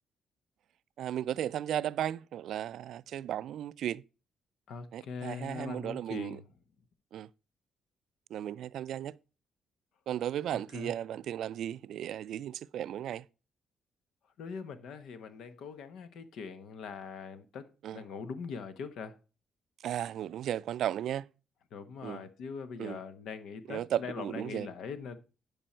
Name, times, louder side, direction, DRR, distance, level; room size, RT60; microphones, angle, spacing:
voice 1, 1.0-4.0 4.9-6.4 7.1-7.3 8.3-9.2 10.1-13.2 17.8-18.0 19.8-21.3 22.0-22.2 22.8-23.0 23.7-24.7, right 11 dB, 75° right, 0.3 m, -35 dB
voice 2, 4.7-6.5 10.5-10.9 14.4-19.2 21.7-25.2, left 5 dB, 75° left, 1.0 m, -42 dB
10.0 x 5.4 x 4.3 m
cardioid pair, 90°, 0 cm